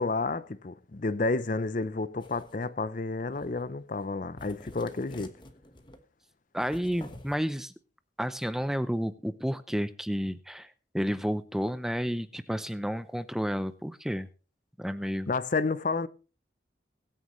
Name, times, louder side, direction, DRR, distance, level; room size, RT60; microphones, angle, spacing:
voice 1, 0.0-5.3 15.3-16.1, left 3 dB, 45° left, 0.6 m, -30 dB
sound 1, 2.2-2.7 3.3-3.7 4.0-4.1 4.4-6.0 6.6-7.4, left 1 dB, 25° left, 1.2 m, -48 dB
voice 2, 6.5-7.7 8.2-14.3 14.8-15.3, equal, ahead, 0.5 m, -31 dB
22.5 x 9.1 x 3.1 m
head